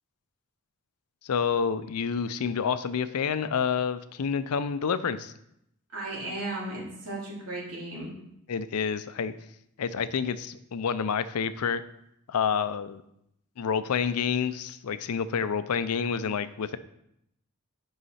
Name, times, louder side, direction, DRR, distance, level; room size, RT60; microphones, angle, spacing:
voice 1, 1.2-5.3 8.5-9.3 9.8-11.8 12.3-13.0 13.6-16.8, left 6 dB, 85° left, 14 dB, 0.5 m, -28 dB
voice 2, 5.9-8.1, right 2 dB, 75° right, -4 dB, 2.7 m, -35 dB
8.0 x 5.6 x 4.2 m, 0.78 s
head